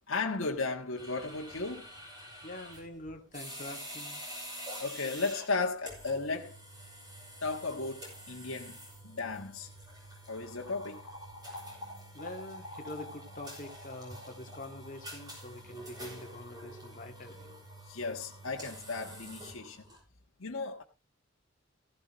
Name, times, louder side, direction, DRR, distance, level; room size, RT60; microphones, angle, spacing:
voice 1, 0.1-1.9 4.8-6.6 7.4-8.8 9.0-9.7 10.3-11.1 17.9-19.8 20.4-20.8, left 3 dB, 75° left, 1.5 m, -35 dB
sound 1, 1.0-20.0, equal, 20° right, 8.0 m, -47 dB
voice 2, 2.4-4.2 12.1-17.5, left 1 dB, 40° left, 2.0 m, -45 dB
15.5 x 11.0 x 3.1 m
head